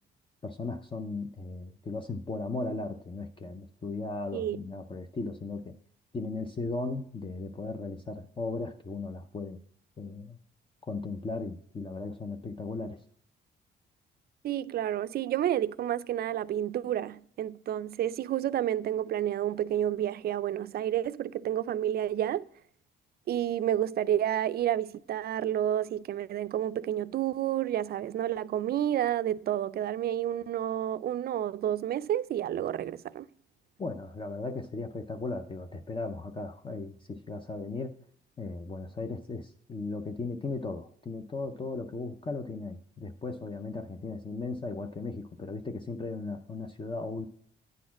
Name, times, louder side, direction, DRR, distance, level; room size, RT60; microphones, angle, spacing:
voice 1, 0.4-5.7 6.1-9.6 10.0-10.4 10.8-13.0 33.8-38.0 38.4-47.3, left 3 dB, 25° left, 0.6 m, -36 dB
voice 2, 14.4-22.5 23.3-33.3, right 11 dB, 50° right, 0.4 m, -30 dB
9.4 x 4.1 x 5.9 m
cardioid pair, 90°, 20 cm